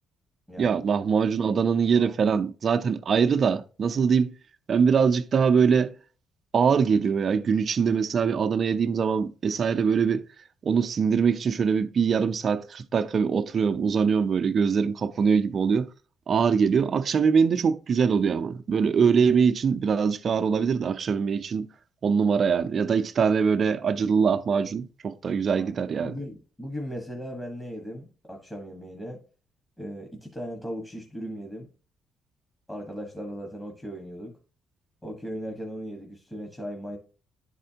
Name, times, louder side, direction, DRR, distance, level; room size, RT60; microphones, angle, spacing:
voice 1, 0.6-4.3 4.7-5.9 6.5-10.3 10.6-15.9 16.3-21.7 22.0-26.2, right 6 dB, 50° right, 0.6 m, -23 dB
voice 2, 25.6-29.2 29.8-31.7 32.7-34.3 35.0-37.0, equal, 15° left, 1.4 m, -37 dB
11.0 x 4.3 x 2.8 m
cardioid pair, 90°, 0 cm